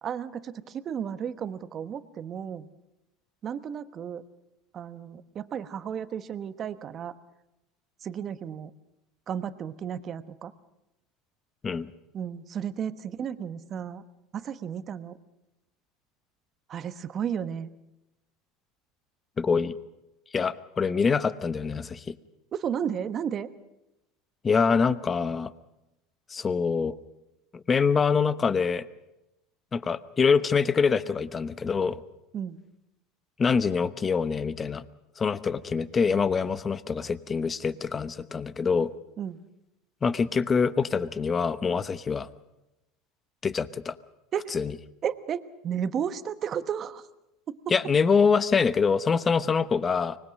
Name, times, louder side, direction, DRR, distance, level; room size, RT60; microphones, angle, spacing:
voice 1, 0.0-2.7 3.4-4.2 4.7-7.1 8.0-8.7 9.3-10.5 12.1-14.0 14.3-15.2 16.7-17.7 22.5-23.5 32.3-32.6 39.2-39.4 44.3-44.5 45.0-47.0 47.5-47.7, right 8 dB, 40° right, 12 dB, 1.2 m, -33 dB
voice 2, 19.4-19.7 20.3-22.1 24.4-25.5 26.3-27.0 27.5-28.8 29.7-32.0 33.4-34.8 35.2-38.9 40.0-42.3 43.4-44.0 44.5-44.7 47.7-50.2, left 5 dB, 25° left, 15 dB, 1.0 m, -25 dB
25.0 x 20.0 x 6.4 m, 0.94 s
supercardioid pair, 100°, 0 cm